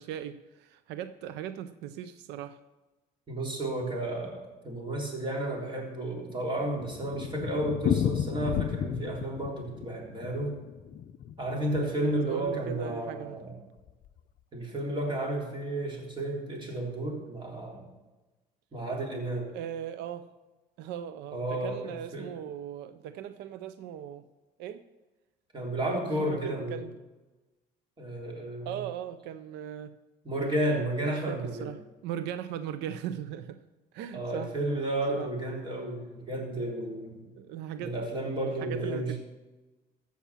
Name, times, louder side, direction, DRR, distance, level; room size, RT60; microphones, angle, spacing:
voice 1, 0.0-2.6 12.2-13.4 19.5-20.3 20.8-24.2 24.6-24.8 26.1-27.0 28.7-29.9 31.3-33.6 33.9-34.5 35.1-35.3 37.4-38.0 38.6-39.2, right 10 dB, 90° right, 12 dB, 0.5 m, -38 dB
voice 2, 3.3-10.6 11.4-13.5 14.5-17.9 18.7-19.5 21.3-22.3 25.5-26.8 28.0-28.7 30.3-31.7 34.1-37.3 37.8-39.2, right 1 dB, 30° right, 0 dB, 3.6 m, -32 dB
Thunder, 5.9-12.2 12.5-12.6 12.9-13.0 13.2-13.3 13.9-14.2, left 9 dB, 55° left, 0.6 m, -33 dB
14.5 x 6.0 x 7.1 m, 1.1 s
cardioid pair, 110°, 17 cm